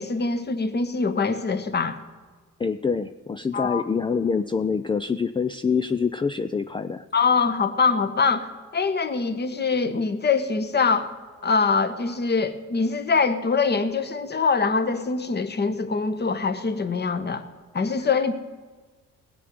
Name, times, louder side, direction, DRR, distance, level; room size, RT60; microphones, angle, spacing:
voice 1, 0.0-2.0 3.5-3.9 7.1-8.5 8.7-11.1 11.4-17.4 17.7-18.3, left 4 dB, 35° left, 10 dB, 1.3 m, -23 dB
voice 2, 2.6-7.1, left 5 dB, 15° left, 11 dB, 0.4 m, -25 dB
18.0 x 6.8 x 9.5 m, 1.4 s
cardioid pair, 90°, 30 cm